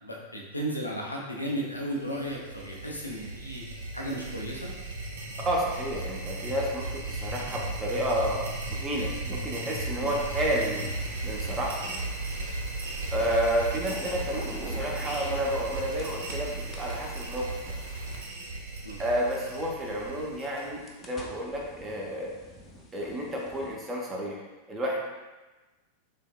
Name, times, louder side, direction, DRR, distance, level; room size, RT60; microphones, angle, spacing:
voice 1, 0.0-3.6 3.9-4.7 10.0-10.2 13.2-13.3 18.8-19.0, right 1 dB, 85° left, -2 dB, 0.5 m, -34 dB
sound 1, 1.9-21.0, right 2 dB, 60° right, 0.5 m, -36 dB
voice 2, 5.4-10.9 11.2-11.7 13.1-17.8 19.0-22.3 22.9-25.0, equal, 20° right, -2 dB, 0.7 m, -31 dB
sound 2, 10.0-18.2, left 2 dB, 55° left, 0.7 m, -49 dB
sound 3, 13.8-16.4 16.7-19.7 20.3-23.8, left 1 dB, 20° left, 0.5 m, -44 dB
3.3 x 3.1 x 2.2 m, 1.2 s
figure-of-eight pair, 90°, 0 cm